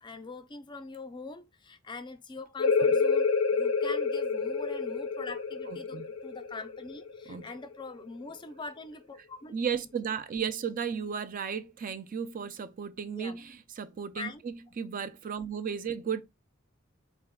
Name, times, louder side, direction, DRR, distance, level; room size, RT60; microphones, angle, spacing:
voice 1, 0.0-9.5 13.1-13.4 14.2-14.4, left 3 dB, 25° left, 0.4 m, -43 dB
sound 1, 2.6-8.0, left 4 dB, 80° left, 0.6 m, -28 dB
voice 2, 5.7-6.0 7.3-7.5 9.5-16.2, right 7 dB, 40° right, 0.4 m, -34 dB
4.2 x 3.5 x 2.2 m
head